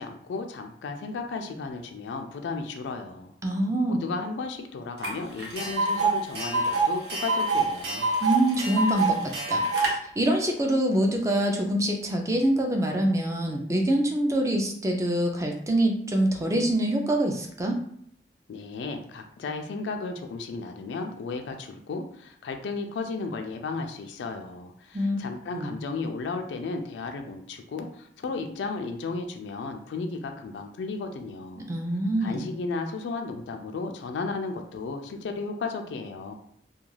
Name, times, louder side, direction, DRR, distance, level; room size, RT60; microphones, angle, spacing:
voice 1, 0.0-3.3 3.9-8.1 18.5-31.6 32.2-36.3, left 4 dB, 90° left, 5 dB, 0.3 m, -34 dB
voice 2, 3.4-4.0 8.2-17.8 24.9-25.2 25.5-25.7 31.7-32.5, right 1 dB, 15° right, 2 dB, 0.3 m, -25 dB
Tick, 5.0-5.1 5.4-9.9, right 3 dB, 70° right, 0.7 m, -25 dB
2.3 x 2.3 x 3.1 m, 0.66 s
head